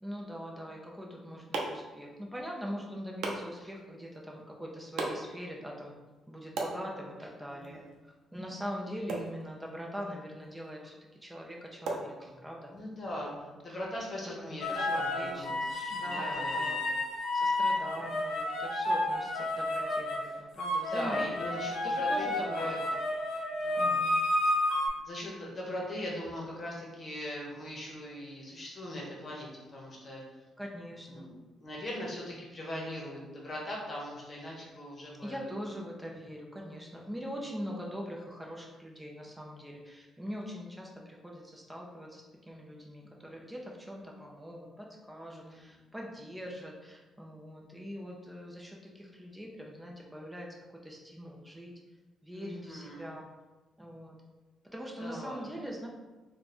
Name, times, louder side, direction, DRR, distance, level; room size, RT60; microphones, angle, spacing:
voice 1, 0.0-5.9 6.3-7.8 8.3-11.0 11.2-12.7 13.3-13.4 14.3-14.4 14.8-16.8 17.3-23.0 23.8-24.2 30.6-31.3 35.2-50.5 50.8-51.7 52.2-53.2 53.8-54.2 54.7-55.9, equal, 10° right, -1 dB, 0.7 m, -42 dB
sound 1, 0.9-12.8, right 3 dB, 75° right, 0.6 m, -42 dB
voice 2, 7.5-7.9 12.7-13.3 13.6-16.8 17.9-18.0 20.8-22.8 23.6-24.0 24.9-30.2 31.0-35.5 45.2-45.8 52.3-53.1 55.0-55.5, left 1 dB, 40° left, -3 dB, 1.1 m, -40 dB
sound 2, 14.6-20.2 20.6-24.9, left 1 dB, 75° left, 0.8 m, -31 dB
3.1 x 2.3 x 4.2 m, 1.2 s
cardioid pair, 90°, 0 cm